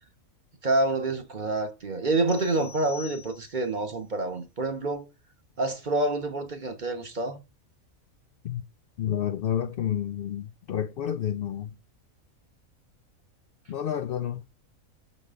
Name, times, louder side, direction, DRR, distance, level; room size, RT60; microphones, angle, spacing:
voice 1, 0.6-5.1 5.6-7.4, right 2 dB, 40° right, 1.0 m, -27 dB
sound 1, 2.3-3.8, left 7 dB, 40° left, 0.9 m, -46 dB
voice 2, 9.0-11.8 13.7-14.4, left 9 dB, 70° left, 0.5 m, -30 dB
6.5 x 4.1 x 5.0 m
omnidirectional pair, 1.4 m